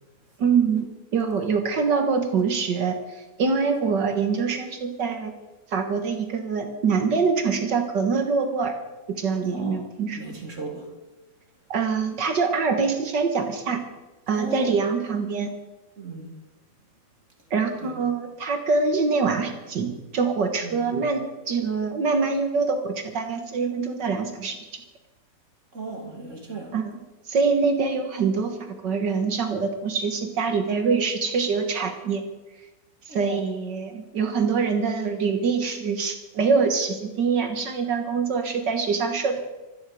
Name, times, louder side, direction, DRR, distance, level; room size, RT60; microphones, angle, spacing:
voice 1, 0.4-0.9 1.1-5.3 5.7-8.8 9.1-10.4 11.7-13.8 14.3-15.5 17.5-24.8 26.7-27.0 27.3-32.2 33.1-39.5, right 5 dB, 65° right, 5 dB, 2.0 m, -24 dB
voice 2, 9.5-9.8 10.1-10.9 14.3-14.7 16.0-16.3 17.8-18.0 20.6-20.9 25.7-26.8 33.1-33.5, right 2 dB, 40° right, 2 dB, 2.8 m, -36 dB
26.0 x 9.9 x 5.1 m, 1.1 s
omnidirectional pair, 2.0 m